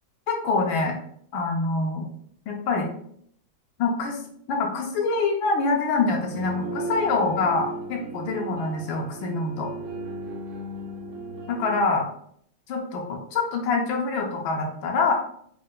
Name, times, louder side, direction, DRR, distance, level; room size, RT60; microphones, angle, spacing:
voice 1, 0.3-1.0 1.3-2.0 2.5-2.9 3.8-4.2 4.5-9.7 11.5-12.1 12.7-15.1, left 3 dB, 80° left, 1 dB, 1.4 m, -25 dB
sound 1, 6.3-11.8, right 2 dB, 80° right, 1.5 m, -35 dB
4.3 x 2.1 x 3.7 m, 0.66 s
omnidirectional pair, 2.2 m